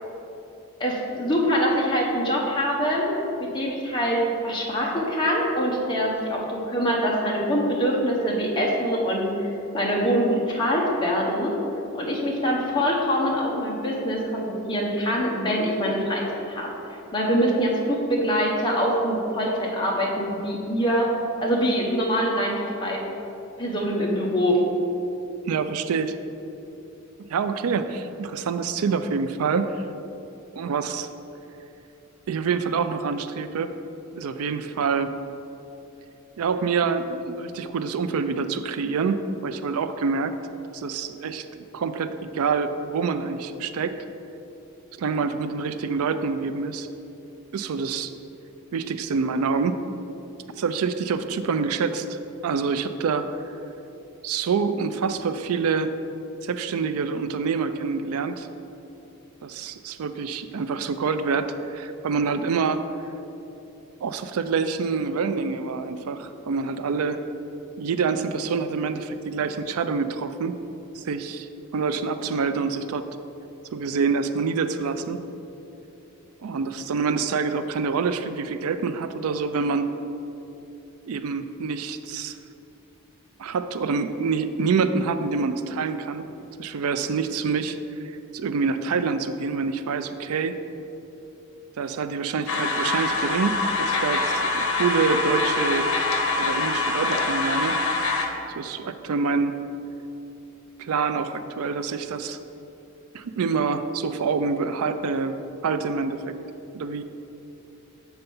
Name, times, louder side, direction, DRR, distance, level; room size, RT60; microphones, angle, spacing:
voice 1, 0.8-3.1 3.4-9.5 9.7-11.6 11.9-16.7 17.1-21.1 21.4-23.0 23.6-24.6, equal, 20° left, -3 dB, 1.0 m, -24 dB
voice 2, 25.5-26.2 27.3-29.8 30.6-31.1 32.3-33.7 34.1-35.1 36.4-40.3 40.7-44.0 45.0-46.9 47.5-48.2 48.7-49.8 50.6-53.3 54.2-56.0 56.4-58.5 59.4-62.8 64.0-67.2 67.8-70.6 71.0-71.5 71.7-73.0 73.7-75.2 76.4-79.9 81.1-82.4 83.4-86.3 86.6-87.8 88.0-90.6 91.8-95.9 96.4-97.8 98.6-99.6 100.8-102.4 103.1-105.4 105.6-106.4 106.7-107.0, right 5 dB, 85° right, 10 dB, 0.4 m, -26 dB
sound 1, 92.5-98.3, left 3 dB, 80° left, 0.8 m, -24 dB
6.9 x 4.3 x 5.4 m, 2.9 s
head